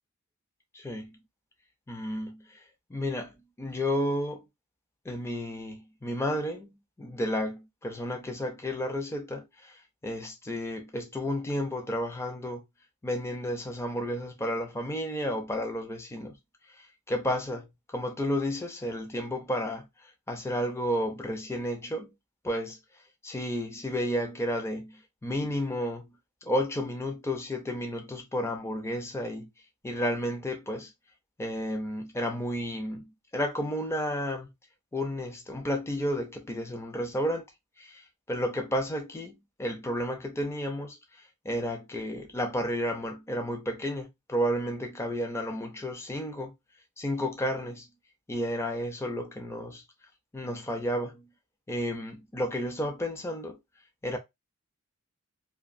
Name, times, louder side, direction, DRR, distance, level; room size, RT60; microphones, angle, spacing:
voice 1, 0.7-1.2 1.9-2.6 2.9-4.4 5.1-12.6 13.0-16.4 16.7-22.1 22.4-22.8 23.2-29.5 29.8-30.9 31.4-34.5 34.9-37.4 37.8-46.5 47.0-47.9 48.3-49.8 50.3-51.3 51.7-53.6 54.0-54.2, equal, 10° left, 0.4 m, -32 dB
2.3 x 2.2 x 2.4 m
head